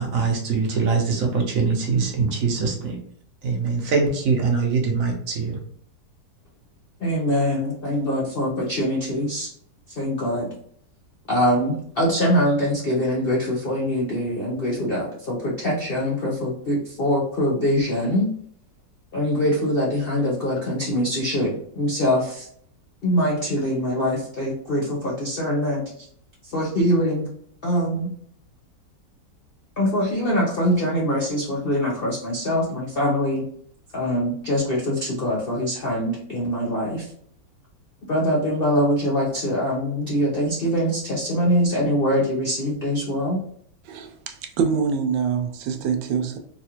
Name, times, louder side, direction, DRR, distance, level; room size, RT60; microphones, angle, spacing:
voice 1, 0.0-3.0 3.4-5.6, right 4 dB, 60° right, 1.0 m, -23 dB
voice 2, 7.0-9.5 10.0-10.5 11.3-18.3 19.1-22.5 23.0-25.8 26.4-27.3 27.6-28.1 29.8-33.5 33.9-37.1 38.1-43.4, equal, 70° left, 0.5 m, -23 dB
voice 3, 43.9-46.4, right 6 dB, 85° right, 1.3 m, -25 dB
4.0 x 2.4 x 2.8 m
omnidirectional pair, 2.0 m